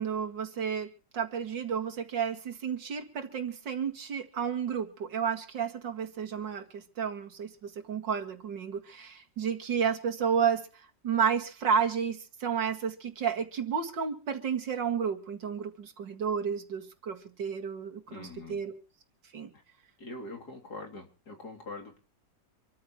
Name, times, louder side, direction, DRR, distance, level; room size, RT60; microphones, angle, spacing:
voice 1, 0.0-18.8 19.3-19.5, right 7 dB, 90° right, 3 dB, 2.7 m, -32 dB
voice 2, 18.1-18.6 19.5-19.6 20.0-22.0, left 2 dB, 60° left, 1 dB, 3.7 m, -43 dB
26.5 x 14.0 x 3.1 m, 0.38 s
omnidirectional pair, 1.9 m